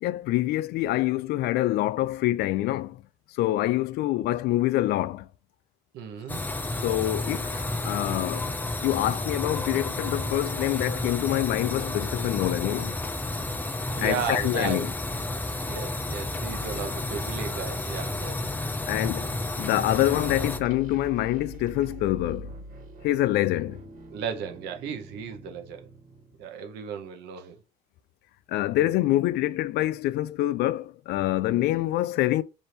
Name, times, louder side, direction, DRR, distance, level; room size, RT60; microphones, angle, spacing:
voice 1, 0.0-3.0 3.3-5.3 6.8-8.5 8.8-13.0 14.0-14.9 18.9-22.5 23.0-23.8 28.5-32.4, left 15 dB, 75° left, 0.4 m, -26 dB
voice 2, 5.9-6.4 13.9-14.9 15.7-18.4 24.1-25.9 26.4-27.6, right 7 dB, 90° right, 0.8 m, -35 dB
sound 1, 6.3-20.6, left 2 dB, 10° left, 0.4 m, -31 dB
sound 2, 19.9-26.5, right 1 dB, 50° right, 1.4 m, -43 dB
3.3 x 2.6 x 4.3 m
cardioid pair, 110°, 17 cm